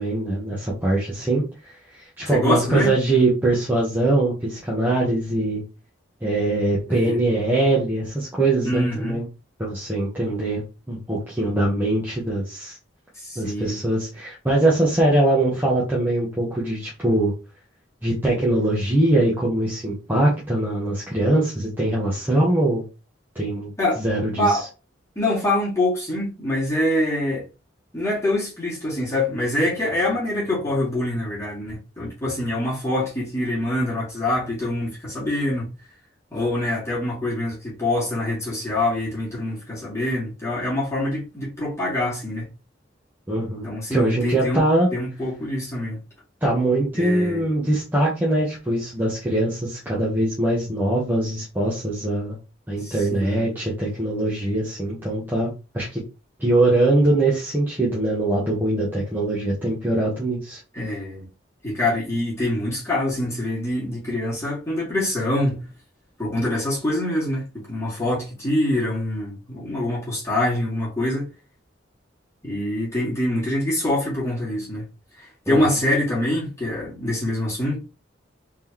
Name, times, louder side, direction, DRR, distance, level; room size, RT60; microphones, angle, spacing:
voice 1, 0.0-5.6 6.2-9.3 9.6-12.8 13.3-17.3 18.0-22.8 23.3-23.7 24.0-24.7 43.3-44.9 46.4-52.4 52.7-56.0 56.4-60.6 75.5-75.6, right 2 dB, 10° right, 1.2 m, -22 dB
voice 2, 2.3-2.9 6.9-7.2 8.6-9.2 13.1-13.8 23.8-24.0 24.4-24.7 25.2-27.5 27.9-35.7 36.3-42.5 43.6-44.6 44.9-46.0 46.9-47.5 52.8-53.5 60.7-61.3 61.6-65.6 66.2-71.3 72.4-74.8 75.2-77.8, left 1 dB, 15° left, 2.3 m, -25 dB
4.3 x 3.6 x 2.9 m
head